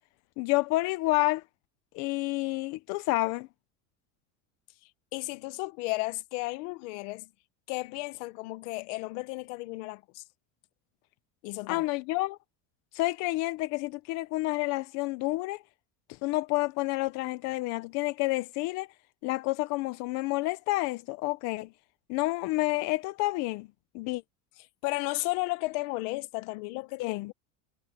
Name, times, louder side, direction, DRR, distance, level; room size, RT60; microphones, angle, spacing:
voice 1, 0.4-1.4 1.9-3.5 11.7-12.4 12.9-15.6 16.2-18.9 19.2-21.7 22.1-23.7 23.9-24.2 27.0-27.3, left 20 dB, 40° left, 0.6 m, -29 dB
voice 2, 5.1-7.3 7.7-10.2 11.4-11.8 24.8-27.3, left 23 dB, 60° left, 1.1 m, -34 dB
cardioid pair, 175°, 40 cm